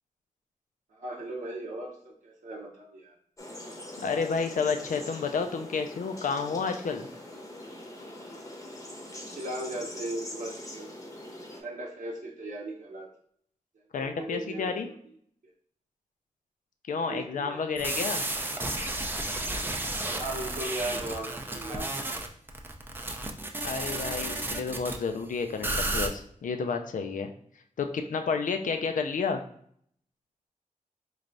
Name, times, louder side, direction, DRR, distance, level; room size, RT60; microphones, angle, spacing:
voice 1, 0.9-3.2 9.1-10.9 11.5-13.1 14.0-14.7 17.1-17.6 20.1-22.2, right 1 dB, 75° right, -5 dB, 0.7 m, -37 dB
sound 1, 3.4-11.6, left 1 dB, 25° left, 0.8 m, -43 dB
voice 2, 4.0-7.1 13.9-14.9 16.9-18.2 23.6-27.3 27.8-29.4, left 5 dB, 75° left, 6 dB, 0.4 m, -30 dB
sound 2, 17.8-25.0 25.6-26.1, right 2 dB, 15° right, 0.4 m, -32 dB
4.4 x 3.2 x 2.5 m, 0.64 s
wide cardioid pair, 115°, 14 cm